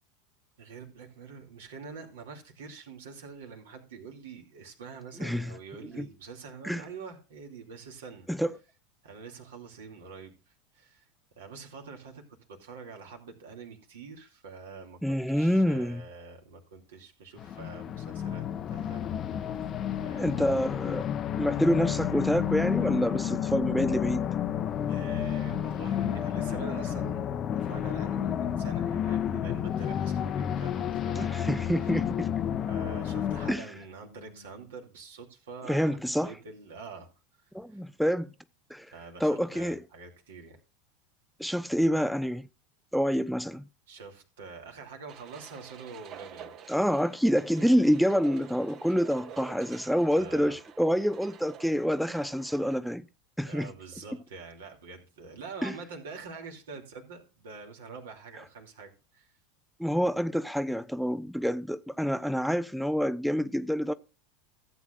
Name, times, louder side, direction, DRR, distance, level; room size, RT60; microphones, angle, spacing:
voice 1, 0.6-8.3 9.0-11.1 11.4-12.2 12.5-19.6 20.0-20.6 24.8-27.3 27.6-32.0 32.7-37.1 37.4-37.8 38.9-40.6 43.9-46.5 50.0-50.6 53.4-59.3, right 4 dB, 70° right, 2.4 m, -46 dB
voice 2, 5.2-5.5 6.0-6.1 6.6-6.8 8.3-8.5 15.0-16.0 20.2-21.0 21.4-24.3 31.2-32.3 33.5-33.7 35.7-36.3 37.5-38.3 38.7-38.9 39.2-39.8 41.4-42.5 42.9-43.6 46.7-53.1 53.4-53.7 55.6-55.8 59.8-63.9, equal, ahead, 0.4 m, -27 dB
sound 1, 16.7-16.9 19.5-34.7, left 3 dB, 55° left, 1.3 m, -56 dB
sound 2, 17.4-33.5, left 9 dB, 35° left, 0.6 m, -31 dB
sound 3, 45.1-52.8, right 8 dB, 45° right, 1.0 m, -48 dB
15.0 x 8.3 x 2.5 m
hypercardioid pair, 85°, 0 cm